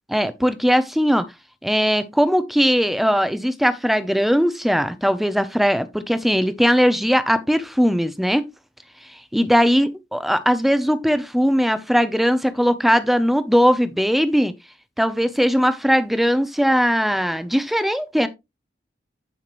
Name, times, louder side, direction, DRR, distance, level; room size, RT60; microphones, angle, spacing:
voice 1, 0.1-1.3 1.6-8.4 9.3-14.5 15.0-18.3, equal, ahead, 0.7 m, -19 dB
10.5 x 5.7 x 3.1 m
head